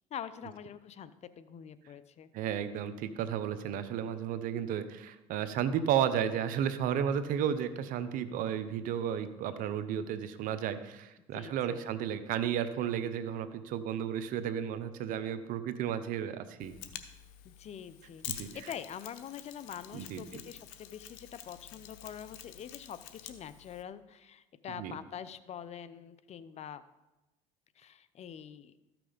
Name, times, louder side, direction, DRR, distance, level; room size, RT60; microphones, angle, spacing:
voice 1, 0.1-2.3 11.3-11.9 17.4-26.8 27.8-28.8, left 8 dB, 45° left, 14 dB, 0.7 m, -45 dB
voice 2, 2.3-16.7 18.3-18.7 19.9-20.4 24.8-24.9, right 9 dB, 65° right, 12 dB, 0.8 m, -33 dB
Mechanisms, 16.6-23.8, left 11 dB, 80° left, 0.9 m, -48 dB
13.5 x 6.0 x 5.1 m, 1.0 s
supercardioid pair, 85°, 15 cm